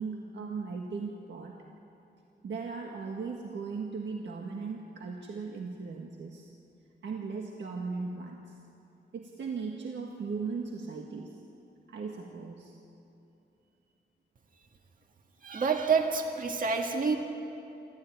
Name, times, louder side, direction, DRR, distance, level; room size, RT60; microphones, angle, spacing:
voice 1, 0.0-1.6 2.4-6.5 7.0-8.6 9.1-11.3 11.9-12.7, right 4 dB, 80° right, 0 dB, 1.7 m, -37 dB
voice 2, 15.4-17.2, right 5 dB, 50° right, 3 dB, 1.8 m, -27 dB
25.5 x 14.5 x 9.4 m, 2.8 s
wide cardioid pair, 175°, 18 cm